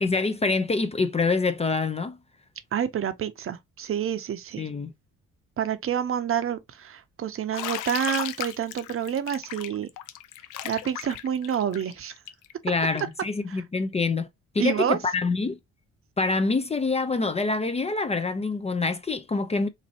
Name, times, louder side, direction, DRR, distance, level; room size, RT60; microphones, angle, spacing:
voice 1, 0.0-2.2 4.6-4.9 12.6-14.3 14.5-15.6 16.2-19.7, left 3 dB, 20° left, 0.4 m, -26 dB
voice 2, 2.7-4.6 5.6-9.9 10.6-12.1 13.5-13.6 14.6-15.0, right 9 dB, 45° right, 0.6 m, -28 dB
Bathtub (filling or washing), 7.5-13.2, left 12 dB, 85° left, 0.5 m, -36 dB
4.1 x 2.6 x 2.7 m
cardioid pair, 90°, 30 cm